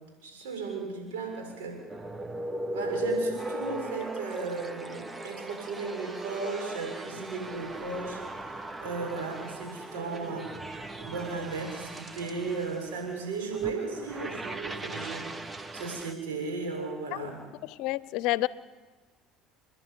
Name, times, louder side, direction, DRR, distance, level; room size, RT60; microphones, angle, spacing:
voice 1, 0.2-1.8 2.7-8.5 8.8-10.5 11.0-15.3 15.7-17.5, right 4 dB, 85° right, 2 dB, 7.0 m, -35 dB
sound 1, 1.9-16.1, right 1 dB, 20° right, 1.2 m, -38 dB
voice 2, 17.6-18.5, left 18 dB, 70° left, 19 dB, 0.7 m, -29 dB
30.0 x 11.0 x 9.8 m, 1.3 s
hypercardioid pair, 80°, 0 cm